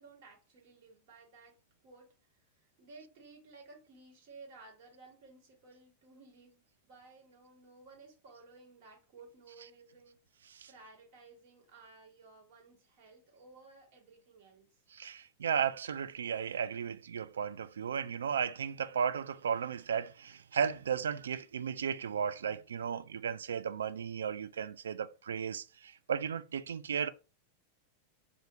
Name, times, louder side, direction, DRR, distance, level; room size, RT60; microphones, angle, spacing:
voice 1, 0.0-1.6 1.8-10.2 10.7-14.7, right 3 dB, 50° right, 1.6 m, -56 dB
voice 2, 14.9-27.1, right 7 dB, 65° right, 0.3 m, -35 dB
2.8 x 2.5 x 3.5 m
figure-of-eight pair, 90°, 0 cm